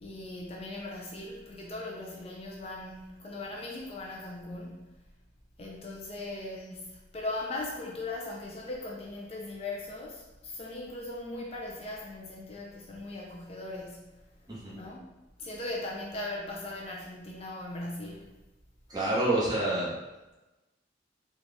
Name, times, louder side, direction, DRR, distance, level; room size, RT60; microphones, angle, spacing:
voice 1, 0.0-5.0 5.6-15.1 15.4-18.3, left 2 dB, 35° left, -2 dB, 0.5 m, -39 dB
voice 2, 18.9-19.9, right 2 dB, 20° right, -7 dB, 1.1 m, -28 dB
4.0 x 2.4 x 3.4 m, 1.1 s
head